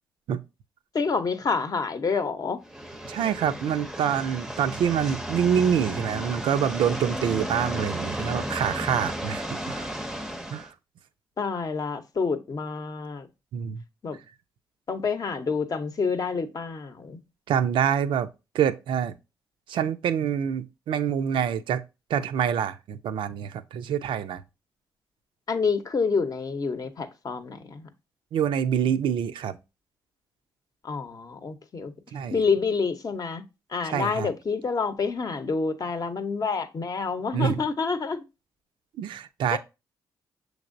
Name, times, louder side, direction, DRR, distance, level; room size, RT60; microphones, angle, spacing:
voice 1, 0.9-2.6 11.4-13.3 14.0-14.2 14.9-17.2 25.5-27.9 30.8-31.9 32.3-33.4 33.7-38.2 39.5-39.6, left 5 dB, 45° left, 0.7 m, -28 dB
sound 1, 2.6-10.7, equal, 5° right, 0.6 m, -34 dB
voice 2, 3.1-9.9 10.5-10.7 13.5-13.8 17.5-18.3 18.5-19.1 19.7-21.8 22.1-24.4 28.3-29.5 32.1-32.4 33.8-34.3 37.3-37.6 39.0-39.6, right 8 dB, 70° right, 0.4 m, -26 dB
6.3 x 3.2 x 2.5 m
supercardioid pair, 55°, 9 cm